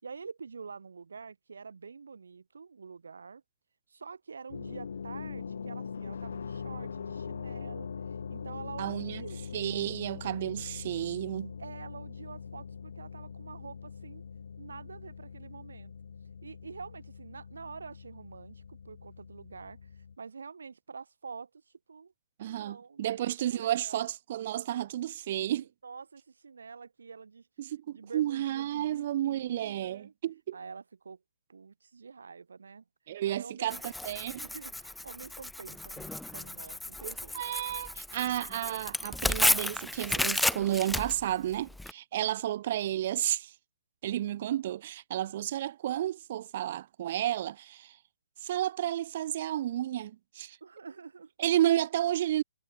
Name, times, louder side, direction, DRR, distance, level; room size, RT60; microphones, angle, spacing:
voice 1, 0.0-3.4 3.9-7.9 8.3-9.5 11.6-14.2 14.6-15.9 16.4-21.6 21.9-22.1 22.4-24.1 25.6-27.5 27.9-30.1 30.5-31.2 31.5-32.8 33.3-33.8 34.4-37.4 50.6-51.3, right 5 dB, 85° right, 6.0 m, -47 dB
sound 1, 4.5-20.2, left 6 dB, 70° left, 3.2 m, -42 dB
voice 2, 8.8-9.2 9.5-11.5 22.4-25.6 27.6-30.6 33.1-34.5 37.0-43.5 44.0-48.0 48.4-50.6 51.4-52.4, right 12 dB, 35° right, 0.7 m, -32 dB
Tearing, 33.7-41.9, left 1 dB, ahead, 0.3 m, -32 dB
hypercardioid pair, 165°, 0 cm